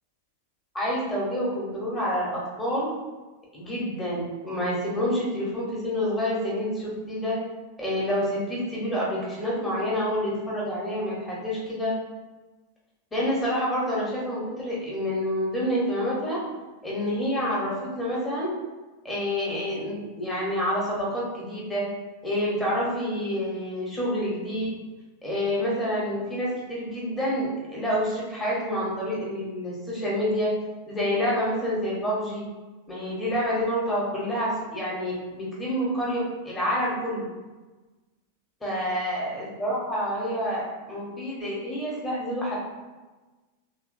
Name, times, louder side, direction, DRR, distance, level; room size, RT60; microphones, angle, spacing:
voice 1, 0.7-2.9 3.5-7.4 7.8-12.0 13.1-16.4 16.8-18.5 19.0-21.8 22.2-24.7 25.2-30.5 30.9-32.4 32.9-37.2 38.6-40.6 40.9-42.6, equal, 15° left, -6 dB, 1.1 m, -28 dB
3.0 x 3.0 x 2.5 m, 1.2 s
figure-of-eight pair, 90°, 0 cm